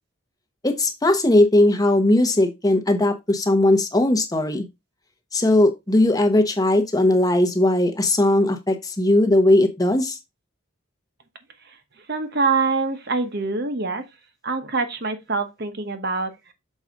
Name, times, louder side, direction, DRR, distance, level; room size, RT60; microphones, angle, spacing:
voice 1, 0.6-4.6 5.3-10.2, left 1 dB, 15° left, 0.8 m, -18 dB
voice 2, 12.1-14.0 14.4-16.5, right 4 dB, 50° right, 1.1 m, -25 dB
6.4 x 4.8 x 3.7 m
head